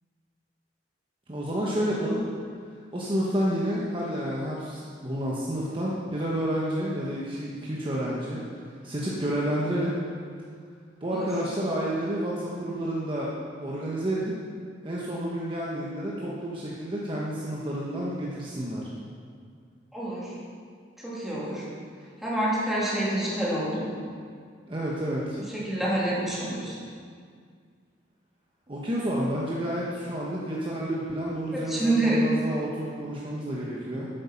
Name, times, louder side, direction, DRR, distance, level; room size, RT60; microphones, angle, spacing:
voice 1, 1.3-2.2 2.9-9.9 11.0-13.3 13.6-14.3 14.8-18.9 24.7-25.4 28.7-34.1, equal, 30° right, -5 dB, 1.1 m, -30 dB
voice 2, 19.9-20.3 21.0-21.6 22.2-23.9 25.5-26.7 31.5-32.2, right 1 dB, ahead, -8 dB, 2.7 m, -27 dB
9.1 x 8.3 x 5.8 m, 2.1 s
head